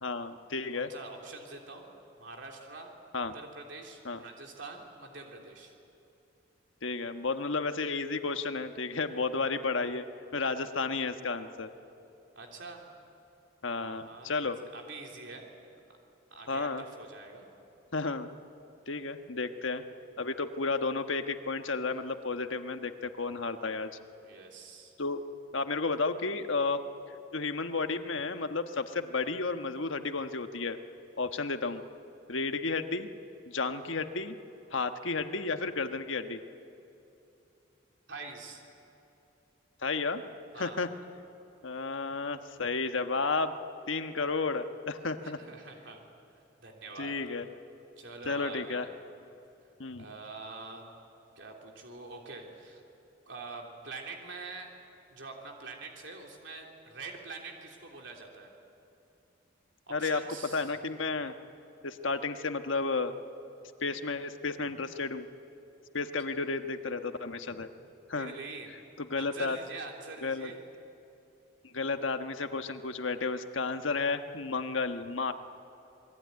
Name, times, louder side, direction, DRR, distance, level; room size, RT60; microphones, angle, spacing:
voice 1, 0.0-0.9 3.1-3.3 4.0-4.2 6.8-10.0 10.3-11.7 13.6-14.6 16.5-16.8 17.9-18.3 18.9-19.8 20.2-23.9 25.0-25.2 25.5-26.8 27.3-30.8 31.2-31.8 32.3-33.1 33.5-34.4 34.7-36.4 39.8-40.2 40.6-40.9 41.6-43.5 43.9-45.4 47.0-47.4 48.2-48.8 49.8-50.1 59.9-60.2 60.5-61.3 61.8-63.1 63.8-65.3 65.9-67.7 68.1-68.3 69.0-69.6 70.2-70.5 71.6-75.3, left 3 dB, 80° left, 7 dB, 1.3 m, -32 dB
voice 2, 0.7-2.9 3.3-5.7 12.3-12.9 13.7-15.4 16.3-17.5 24.2-24.9 38.1-38.6 40.5-40.8 45.2-46.0 46.6-47.1 48.0-49.0 49.9-50.9 51.4-52.8 53.3-54.7 55.1-58.5 59.9-60.7 68.1-68.7 69.2-70.6, right 3 dB, 65° right, 1 dB, 3.4 m, -45 dB
27.5 x 21.0 x 9.5 m, 2.8 s
head